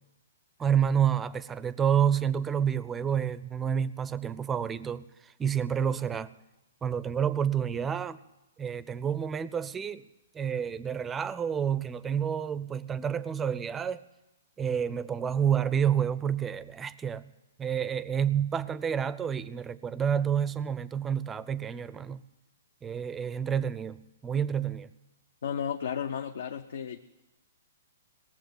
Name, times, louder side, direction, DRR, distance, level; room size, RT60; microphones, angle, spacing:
voice 1, 0.6-6.3 6.8-8.2 8.6-10.0 10.3-14.0 14.6-17.3 17.6-22.2 22.8-24.9, right 8 dB, 15° right, 0.5 m, -29 dB
voice 2, 25.4-27.0, left 8 dB, 70° left, 0.7 m, -33 dB
18.5 x 7.3 x 9.3 m
hypercardioid pair, 145°, 0 cm